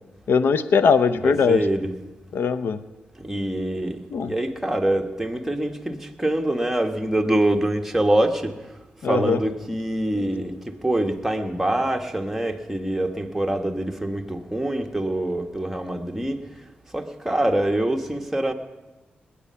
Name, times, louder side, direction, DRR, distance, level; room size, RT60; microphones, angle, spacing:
voice 1, 0.3-1.6 2.3-2.8 4.1-4.4 9.0-9.4, left 5 dB, 80° left, 13 dB, 0.6 m, -20 dB
voice 2, 1.2-1.9 3.2-8.5 9.0-16.4 16.9-18.5, right 1 dB, 5° right, 3 dB, 1.4 m, -25 dB
19.5 x 8.5 x 5.7 m, 1.1 s
cardioid pair, 60°, 4 cm